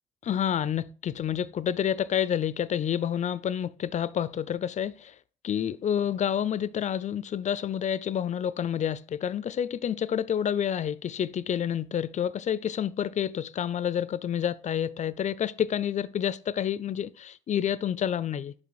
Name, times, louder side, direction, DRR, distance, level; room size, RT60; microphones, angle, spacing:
voice 1, 0.3-5.1 5.4-18.5, left 9 dB, 50° left, 0.5 m, -29 dB
6.9 x 5.1 x 4.8 m
supercardioid pair, 55°, 16 cm